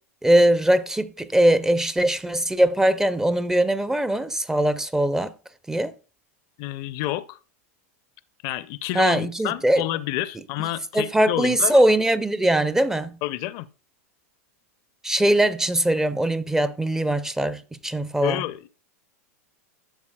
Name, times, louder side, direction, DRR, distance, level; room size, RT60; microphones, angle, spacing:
voice 1, 0.2-5.3 5.7-5.9 8.9-9.8 10.9-13.2 15.0-18.4, right 1 dB, 5° right, 0.4 m, -21 dB
voice 2, 6.6-7.4 8.4-11.8 13.2-13.7 18.2-18.7, left 15 dB, 50° left, 0.5 m, -29 dB
12.0 x 7.2 x 2.2 m
hypercardioid pair, 105°, 8 cm